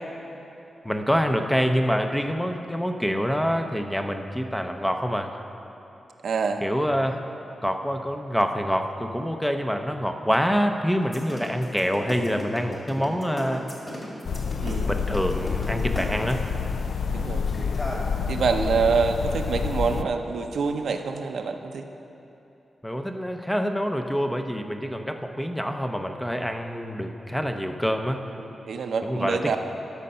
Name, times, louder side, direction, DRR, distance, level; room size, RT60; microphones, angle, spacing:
voice 1, 0.8-5.3 6.6-7.2 7.6-13.6 14.9-16.4 22.8-28.2 29.0-29.6, equal, 5° left, 5 dB, 0.6 m, -26 dB
voice 2, 6.2-6.6 14.6-14.9 17.1-17.4 18.3-21.8 28.4-29.6, right 5 dB, 75° right, 5 dB, 0.6 m, -26 dB
sound 1, 11.0-16.5 17.3-18.0, left 1 dB, 25° left, 2.2 m, -36 dB
sound 2, 14.2-20.0, left 6 dB, 70° left, 0.3 m, -28 dB
12.5 x 6.6 x 5.5 m, 3.0 s
wide cardioid pair, 125°, 0 cm